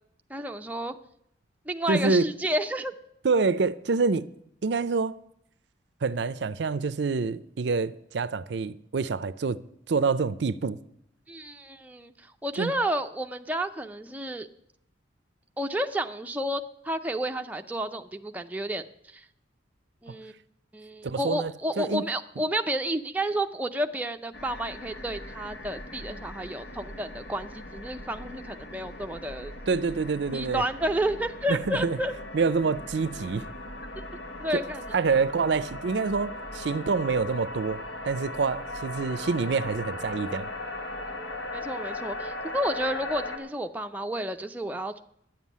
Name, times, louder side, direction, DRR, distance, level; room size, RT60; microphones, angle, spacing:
voice 1, 0.3-1.0 1.7-2.9 11.3-12.1 12.4-14.5 15.6-18.8 19.1-19.2 20.0-20.3 20.7-29.5 30.3-32.1 34.4-34.8 41.5-44.9, right 1 dB, 10° right, 0.5 m, -31 dB
voice 2, 1.9-2.3 3.2-4.3 4.6-5.2 6.0-9.6 9.9-10.8 12.6-12.7 21.0-22.1 29.7-30.6 31.5-32.0 32.3-33.5 34.5-34.6 34.9-40.5, right 4 dB, 65° right, 0.5 m, -26 dB
sound 1, 24.3-43.4, left 2 dB, 80° left, 1.8 m, -38 dB
10.5 x 7.3 x 9.4 m
head